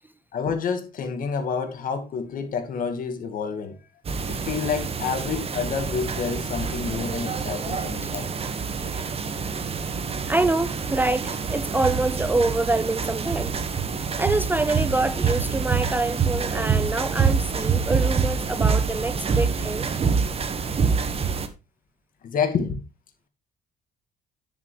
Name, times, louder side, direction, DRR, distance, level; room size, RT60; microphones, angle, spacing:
voice 1, 0.3-3.8 4.3-8.3 22.2-22.8, left 6 dB, 55° left, 2.1 m, -28 dB
sound 1, 4.0-21.5, right 5 dB, 35° right, 1.5 m, -26 dB
voice 2, 10.3-13.6 14.2-19.9, right 2 dB, 10° right, 0.4 m, -26 dB
9.5 x 8.0 x 3.3 m
cardioid pair, 110°, 17 cm